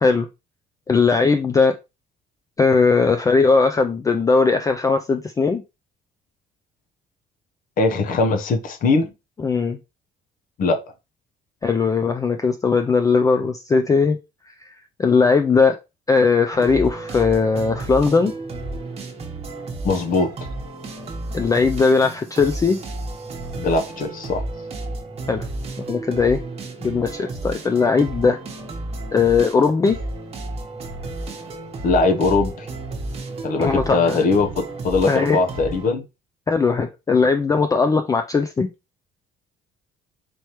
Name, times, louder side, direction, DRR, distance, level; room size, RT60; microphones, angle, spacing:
voice 1, 0.9-1.7 2.6-5.6 9.4-9.8 11.6-14.2 14.6-14.7 15.0-15.8 16.1-18.3 21.3-22.8 25.3-25.5 25.8-26.4 26.8-28.4 29.1-30.0 33.6-34.2 35.1-35.4 36.5-38.7, left 4 dB, 20° left, 0.4 m, -19 dB
voice 2, 7.8-9.1 10.6-10.8 19.8-20.4 23.6-24.4 31.8-32.7 33.4-36.0, left 3 dB, 55° left, 0.8 m, -20 dB
sound 1, 16.5-35.9, right 2 dB, 35° right, 1.1 m, -32 dB
4.4 x 3.2 x 3.0 m
cardioid pair, 110°, 17 cm